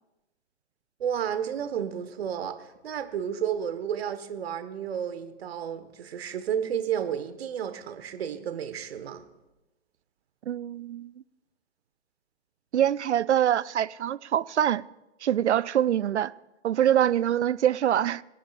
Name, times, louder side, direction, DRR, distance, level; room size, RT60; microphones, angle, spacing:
voice 1, 1.0-9.2, right 8 dB, 60° right, 1.4 m, -32 dB
voice 2, 10.5-11.2 12.7-14.8 15.2-16.3 16.6-18.2, right 10 dB, 80° right, 0.5 m, -24 dB
25.0 x 10.0 x 2.5 m
figure-of-eight pair, 120°, 34 cm